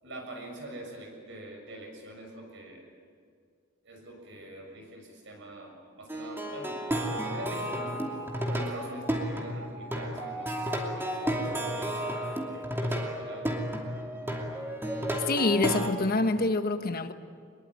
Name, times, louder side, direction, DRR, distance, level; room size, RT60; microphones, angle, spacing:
voice 1, 0.0-2.9 3.8-6.8 7.2-8.0 8.5-13.5, right 1 dB, 65° right, 3 dB, 6.9 m, -44 dB
Plucked string instrument, 6.1-15.9, right 1 dB, 10° right, 2.7 m, -32 dB
voice 2, 15.3-17.1, left 3 dB, 50° left, 8 dB, 1.3 m, -26 dB
23.5 x 22.0 x 9.2 m, 2.1 s
head